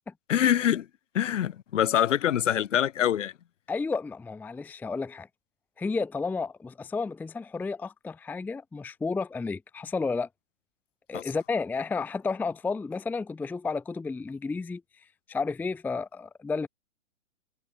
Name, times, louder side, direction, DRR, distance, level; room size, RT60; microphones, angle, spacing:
voice 1, 0.3-0.9 1.1-3.3 11.1-11.2, left 10 dB, 65° left, 4.5 m, -24 dB
voice 2, 3.7-5.3 5.8-10.3 11.1-14.8 15.3-16.7, left 4 dB, 5° left, 0.7 m, -32 dB
hypercardioid pair, 130°, 39 cm